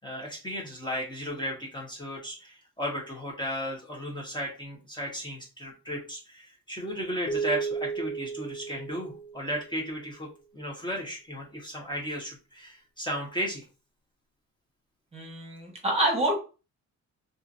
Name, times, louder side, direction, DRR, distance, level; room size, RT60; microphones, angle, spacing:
voice 1, 0.0-13.6, equal, 15° left, -3 dB, 1.0 m, -35 dB
sound 1, 7.3-9.8, right 5 dB, 60° left, 0.5 m, -34 dB
voice 2, 15.1-16.3, right 1 dB, 20° right, 0 dB, 1.1 m, -27 dB
2.7 x 2.5 x 2.5 m, 0.32 s
cardioid pair, 90°, 30 cm